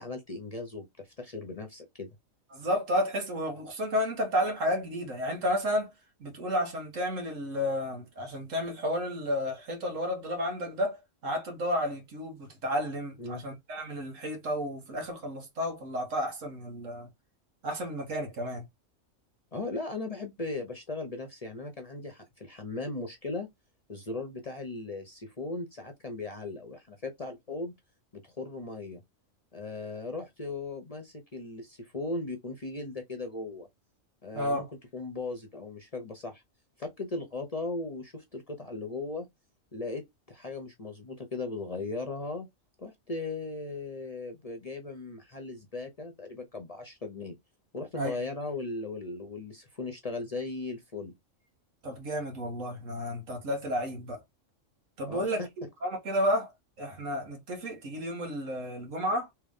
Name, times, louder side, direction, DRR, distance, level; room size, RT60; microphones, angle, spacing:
voice 1, 0.0-2.1 13.2-13.4 19.5-23.5 23.9-27.7 28.1-29.0 29.5-33.7 34.2-34.7 34.9-36.4 36.8-39.3 39.7-42.5 42.8-47.4 47.7-51.1 55.1-55.5, left 3 dB, 35° left, 0.7 m, -37 dB
voice 2, 2.5-5.9 6.2-11.0 11.2-17.1 17.6-18.7 34.3-34.6 47.9-48.2 51.8-54.2 55.0-55.4 55.8-56.5 56.8-59.3, equal, 80° right, 1.7 m, -31 dB
3.4 x 3.1 x 3.5 m
omnidirectional pair, 1.3 m